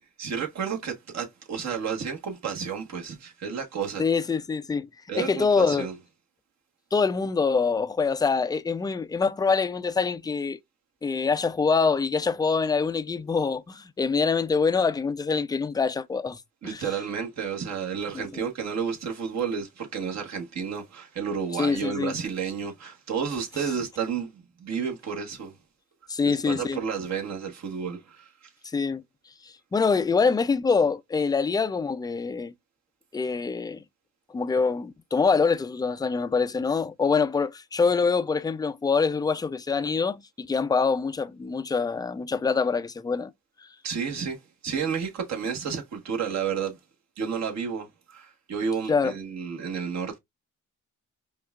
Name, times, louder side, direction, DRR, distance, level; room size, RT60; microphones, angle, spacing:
voice 1, 0.2-4.0 5.1-5.9 16.6-25.6 26.2-28.3 43.8-46.8 47.2-50.2, right 6 dB, 60° right, 1.4 m, -31 dB
voice 2, 4.0-4.9 5.2-5.9 6.9-10.6 11.0-16.8 18.1-18.4 21.6-22.1 26.1-26.8 28.6-29.0 29.7-32.5 33.1-33.8 34.3-43.3 48.9-49.1, left 5 dB, 15° left, 0.3 m, -25 dB
5.1 x 2.4 x 2.4 m
cardioid pair, 90°, 30 cm